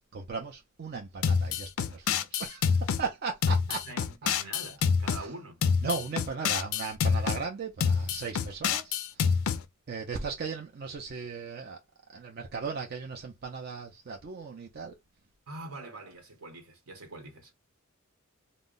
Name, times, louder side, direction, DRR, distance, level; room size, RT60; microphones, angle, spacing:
voice 1, 0.1-3.9 4.2-4.3 5.1-5.3 5.8-9.4 9.9-11.8 12.1-14.9, right 4 dB, 50° right, 0.5 m, -37 dB
sound 1, 1.2-3.0 3.4-5.2 5.6-7.4 7.8-9.6, left 6 dB, 70° left, 0.3 m, -27 dB
voice 2, 3.8-5.6 15.5-17.5, right 2 dB, 80° right, 1.0 m, -44 dB
2.2 x 2.0 x 3.7 m
head